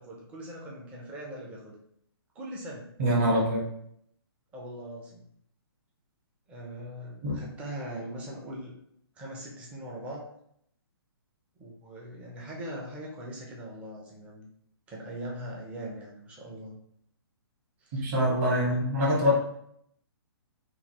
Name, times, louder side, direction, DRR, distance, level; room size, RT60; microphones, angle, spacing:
voice 1, 0.0-1.7 2.4-2.9 4.5-5.2 6.5-8.7 9.2-10.2 11.6-14.5 14.9-16.8 17.8-18.1 18.4-18.8 19.1-19.4, right 1 dB, 10° right, -3 dB, 0.5 m, -41 dB
voice 2, 3.0-3.6 7.2-7.4 17.9-19.4, equal, 35° right, -5 dB, 1.4 m, -24 dB
3.7 x 2.3 x 2.9 m, 0.70 s
hypercardioid pair, 160°, 13 cm